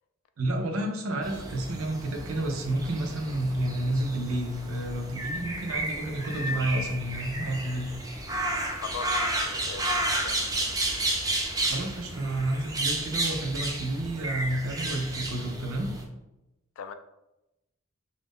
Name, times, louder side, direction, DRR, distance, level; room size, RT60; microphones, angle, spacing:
voice 1, 0.4-7.9 11.6-15.9, right 1 dB, 85° right, 3 dB, 0.5 m, -30 dB
sound 1, 1.2-16.0, right 1 dB, 20° right, 0.4 m, -32 dB
voice 2, 8.7-10.7 16.8-16.9, left 6 dB, 75° left, 8 dB, 0.3 m, -40 dB
2.4 x 2.0 x 3.4 m, 0.92 s
head